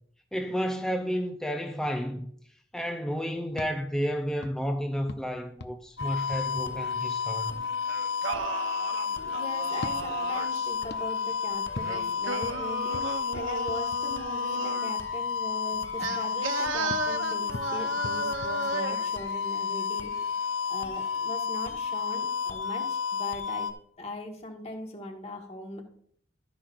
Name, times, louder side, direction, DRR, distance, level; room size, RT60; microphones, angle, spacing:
voice 1, 0.3-2.3 2.7-7.6 8.2-8.4, equal, 5° left, 0.5 m, -31 dB
sound 1, 3.5-7.3 9.7-14.6 16.9-19.3, left 2 dB, 55° left, 0.6 m, -45 dB
sound 2, 6.0-23.7, left 6 dB, 75° left, 1.2 m, -31 dB
Singing, 7.9-10.7 11.8-15.0 16.0-19.1, right 3 dB, 75° right, 0.9 m, -35 dB
voice 2, 9.2-23.7 24.0-25.8, left 1 dB, 30° left, 1.5 m, -40 dB
13.0 x 10.0 x 2.6 m
head